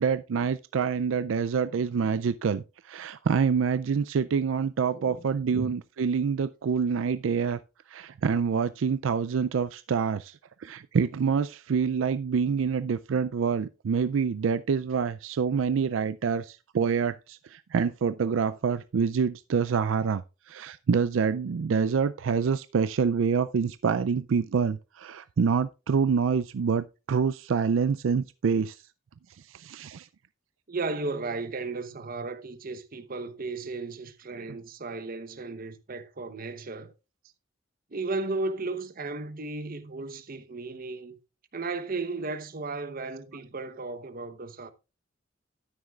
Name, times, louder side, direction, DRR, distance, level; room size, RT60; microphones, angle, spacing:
voice 1, 0.0-7.6 7.9-28.8 29.5-30.1, right 6 dB, 75° right, 0.4 m, -26 dB
voice 2, 4.9-5.3 5.5-5.7 30.7-36.9 37.9-41.2 41.5-44.7, right 3 dB, 45° right, 0.9 m, -35 dB
12.5 x 9.6 x 2.4 m
head